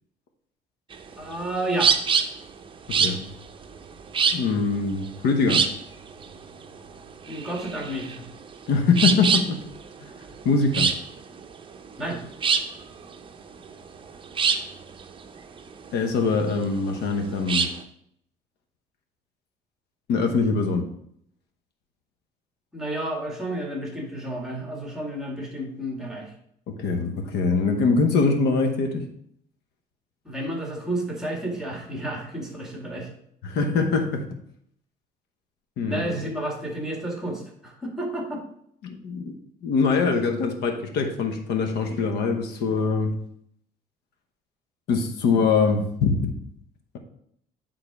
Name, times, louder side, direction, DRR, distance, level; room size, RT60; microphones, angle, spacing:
sound 1, 0.9-17.8, right 6 dB, 30° right, 0.7 m, -26 dB
voice 1, 1.2-1.9 7.3-8.3 12.0-12.2 22.7-26.3 30.3-33.1 35.9-38.4, right 1 dB, 5° right, 0 dB, 2.0 m, -31 dB
voice 2, 2.9-3.2 4.3-5.6 8.7-9.6 10.0-10.1 10.4-10.9 15.9-17.7 20.1-20.9 26.7-29.1 33.4-34.3 35.8-36.0 38.8-39.3 39.6-43.2 44.9-46.3, left 4 dB, 75° left, 5 dB, 1.1 m, -23 dB
8.9 x 3.9 x 4.8 m, 0.70 s
cardioid pair, 110°, 17 cm